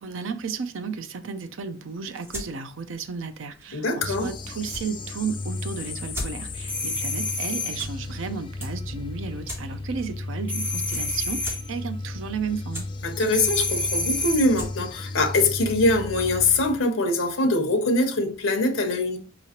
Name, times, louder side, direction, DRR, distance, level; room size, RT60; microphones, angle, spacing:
voice 1, 0.0-12.9, right 5 dB, 70° right, 0.5 m, -33 dB
sound 1, 1.9-16.3, equal, 15° right, 2.1 m, -43 dB
voice 2, 3.7-4.3 13.0-19.2, left 2 dB, 80° left, 0.8 m, -23 dB
sound 2, 4.0-16.8, left 2 dB, 25° left, 0.4 m, -35 dB
sound 3, 6.7-7.9 10.5-11.7 13.3-14.6, left 2 dB, 5° left, 0.8 m, -28 dB
4.7 x 3.0 x 2.8 m
head